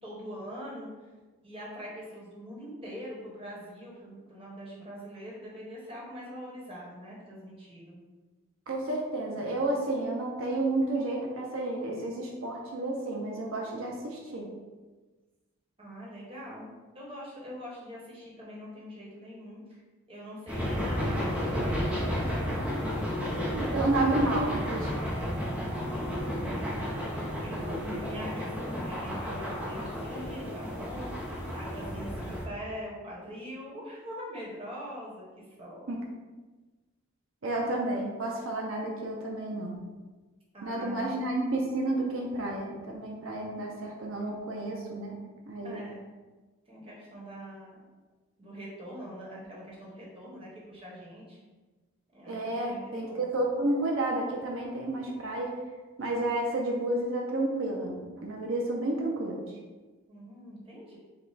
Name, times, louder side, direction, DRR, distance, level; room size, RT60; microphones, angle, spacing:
voice 1, 0.0-0.9 1.4-8.0 15.8-19.8 20.1-22.6 23.2-23.3 23.8-24.3 26.9-31.1 31.5-35.3 35.6-35.9 37.5-37.7 40.5-41.1 45.6-46.0 46.7-47.8 48.4-51.4 52.1-53.3 60.1-61.0, equal, 25° right, -6 dB, 1.2 m, -43 dB
voice 2, 8.7-14.5 23.4-24.9 35.9-36.0 37.4-39.8 40.6-45.2 45.5-45.8 52.3-55.5 56.0-59.5, right 2 dB, 80° right, -1 dB, 0.7 m, -31 dB
sound 1, 20.5-32.4, equal, 5° right, 0.7 m, -32 dB
5.3 x 2.3 x 4.0 m, 1.3 s
head